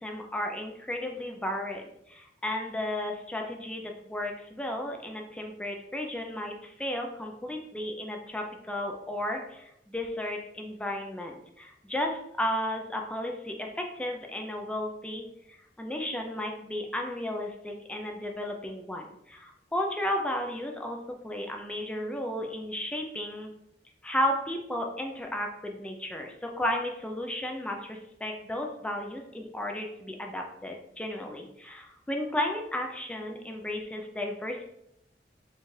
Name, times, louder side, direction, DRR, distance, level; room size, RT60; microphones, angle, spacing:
voice 1, 0.0-21.0 21.2-23.5 24.0-34.6, left 1 dB, 5° left, 2 dB, 0.3 m, -34 dB
4.3 x 2.4 x 3.1 m, 0.80 s
head